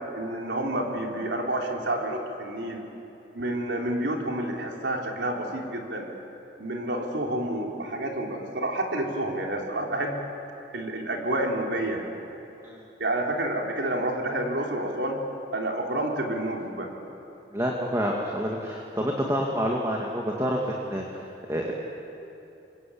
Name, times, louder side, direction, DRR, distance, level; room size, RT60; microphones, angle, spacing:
voice 1, 0.1-2.8 3.3-6.1 6.6-10.2 10.7-12.0 13.0-15.2 15.5-16.9, right 1 dB, 80° right, 0 dB, 3.9 m, -29 dB
voice 2, 17.5-21.7, equal, 15° right, -1 dB, 2.0 m, -28 dB
27.0 x 22.5 x 8.6 m, 2.9 s
head